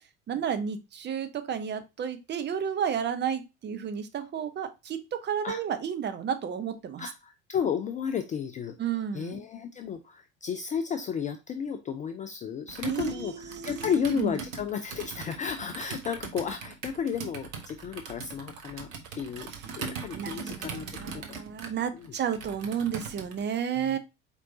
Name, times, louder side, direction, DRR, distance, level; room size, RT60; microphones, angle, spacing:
voice 1, 0.3-7.1 8.8-9.4 12.8-14.3 20.1-24.0, right 8 dB, 25° right, 9 dB, 0.7 m, -32 dB
voice 2, 7.0-8.7 9.1-18.9 19.1-19.5 19.8-21.4 21.9-22.1 23.7-24.0, left 7 dB, 20° left, 7 dB, 0.4 m, -33 dB
Computer keyboard, 12.7-23.5, right 5 dB, 75° right, 1.0 m, -41 dB
4.5 x 4.2 x 2.6 m, 0.25 s
figure-of-eight pair, 70°, 40 cm